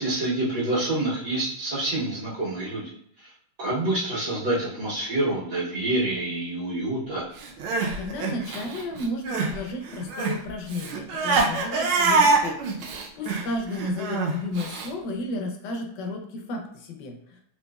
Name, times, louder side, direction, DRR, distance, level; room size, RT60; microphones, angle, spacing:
voice 1, 0.0-2.9 3.2-3.3 3.6-7.3, right 2 dB, 60° right, -8 dB, 1.5 m, -27 dB
Crying sobbing, 7.4-9.6 9.8-14.9, right 4 dB, 85° right, 1.5 m, -25 dB
voice 2, 7.7-17.4, left 2 dB, 70° left, 2 dB, 1.1 m, -33 dB
4.0 x 2.8 x 2.2 m, 0.70 s
omnidirectional pair, 2.2 m